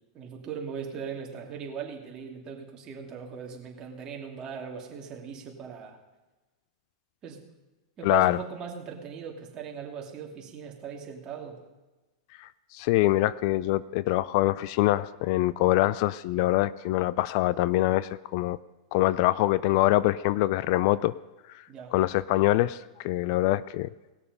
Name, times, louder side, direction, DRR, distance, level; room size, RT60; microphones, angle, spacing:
voice 1, 0.1-6.0 7.2-7.4 8.0-11.6 21.7-21.9, right 7 dB, 30° right, 0 dB, 2.6 m, -39 dB
voice 2, 8.0-8.4 12.4-18.6 18.9-21.1 21.9-23.9, left 16 dB, 50° left, 19 dB, 0.3 m, -24 dB
19.0 x 6.9 x 5.4 m, 1.1 s
hypercardioid pair, 130°, 3 cm